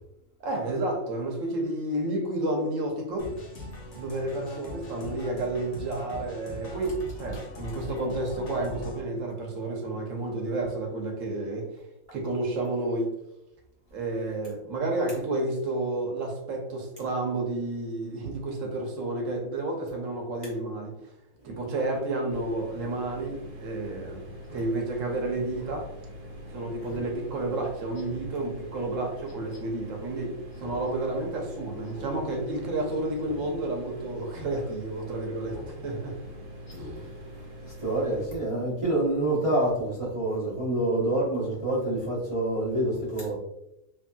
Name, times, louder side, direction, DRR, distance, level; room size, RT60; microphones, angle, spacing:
voice 1, 0.4-3.3 3.9-11.8 12.1-13.1 13.9-20.9 21.4-24.3 24.5-25.9 26.5-36.2 36.7-36.9, right 2 dB, 70° right, 1 dB, 1.1 m, -31 dB
sound 1, 3.2-9.0, left 1 dB, 60° left, 1.1 m, -41 dB
sound 2, 22.3-38.3, equal, 90° right, 1.2 m, -43 dB
Speech synthesizer, 24.4-24.7 25.0-25.1 25.5-25.8 26.2-26.3 26.9-27.1 27.4-27.5 27.9-28.3 29.3-29.6 30.5-30.9 31.2-31.3 31.8-32.2 32.5-32.7 33.2-33.4 33.8-33.9 34.3-34.5 35.5-35.7 36.1-36.2 36.6-37.0 37.3-37.4, left 2 dB, 45° left, 0.7 m, -45 dB
voice 2, 37.8-43.3, right 1 dB, 30° right, -8 dB, 0.7 m, -27 dB
3.0 x 2.7 x 2.2 m, 0.85 s
omnidirectional pair, 1.4 m